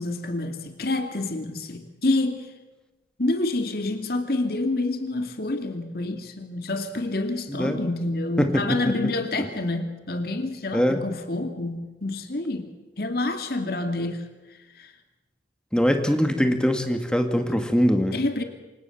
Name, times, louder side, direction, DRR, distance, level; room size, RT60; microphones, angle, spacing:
voice 1, 0.0-2.5 3.2-12.7 13.0-14.3 14.8-14.9 18.1-18.4, left 2 dB, 55° left, 6 dB, 2.4 m, -28 dB
voice 2, 7.5-7.8 8.4-9.1 10.7-11.1 15.7-18.1, equal, 5° left, 6 dB, 2.0 m, -22 dB
28.5 x 26.5 x 7.2 m, 1.1 s
head